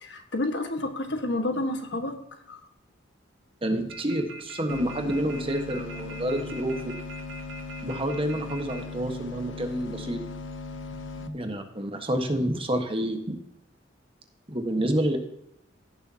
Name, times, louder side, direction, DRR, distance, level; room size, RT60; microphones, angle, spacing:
voice 1, 0.0-2.2 2.5-2.6, left 2 dB, 65° left, 6 dB, 1.5 m, -29 dB
voice 2, 3.6-6.9 7.8-10.2 11.3-13.4 14.5-15.2, right 1 dB, 30° right, 5 dB, 1.3 m, -28 dB
sound 1, 3.9-8.8, right 2 dB, 75° right, 2.1 m, -42 dB
sound 2, 4.7-11.3, left 3 dB, 80° left, 0.9 m, -38 dB
16.5 x 6.8 x 2.8 m, 0.79 s
head